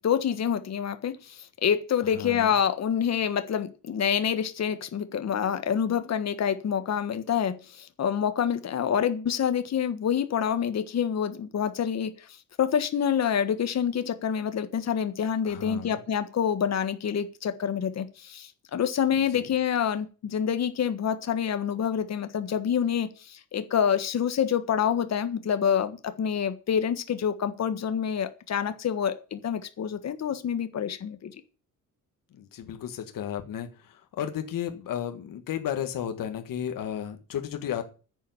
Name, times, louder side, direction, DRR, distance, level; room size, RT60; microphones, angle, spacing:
voice 1, 0.0-31.4, left 8 dB, 50° left, 1.5 m, -27 dB
voice 2, 2.0-2.5 15.4-16.0 19.1-19.5 32.3-37.8, left 10 dB, 70° left, 1.8 m, -34 dB
10.0 x 7.2 x 9.4 m
cardioid pair, 140°, 34 cm